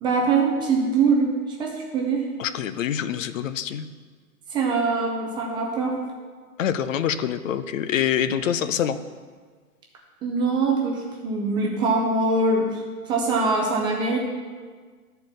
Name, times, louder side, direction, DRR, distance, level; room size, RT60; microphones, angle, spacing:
voice 1, 0.0-2.2 4.5-6.0 10.2-12.8 13.1-14.2, right 3 dB, 10° right, -1 dB, 0.5 m, -23 dB
voice 2, 2.4-3.9 6.6-9.0, left 9 dB, 60° left, 12 dB, 0.7 m, -25 dB
12.5 x 4.5 x 6.5 m, 1.5 s
hypercardioid pair, 135°, 45 cm